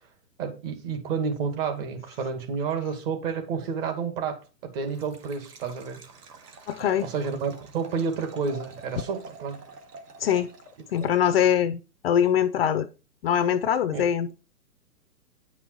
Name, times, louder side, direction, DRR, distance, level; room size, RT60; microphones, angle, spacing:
voice 1, 0.4-6.0 7.0-9.6 13.9-14.0, right 5 dB, 35° right, 2.3 m, -30 dB
Liquid, 4.8-11.7, right 3 dB, 75° right, 2.2 m, -47 dB
voice 2, 6.7-7.1 10.2-10.5 10.9-12.9 13.2-14.3, left 9 dB, 40° left, 0.6 m, -23 dB
9.9 x 5.6 x 4.6 m
hypercardioid pair, 140°, 48 cm